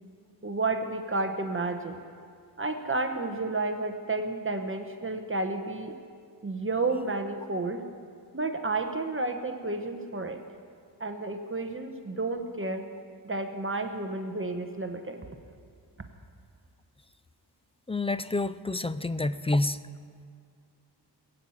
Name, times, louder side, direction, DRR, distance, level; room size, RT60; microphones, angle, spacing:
voice 1, 0.4-2.0 2.6-5.9 6.4-7.8 8.3-10.4 11.0-12.9 13.2-15.3, right 3 dB, 30° right, 6 dB, 1.0 m, -31 dB
voice 2, 17.9-19.8, left 2 dB, 15° left, 14 dB, 0.3 m, -28 dB
20.5 x 9.3 x 7.1 m, 2.2 s
wide cardioid pair, 115°, 41 cm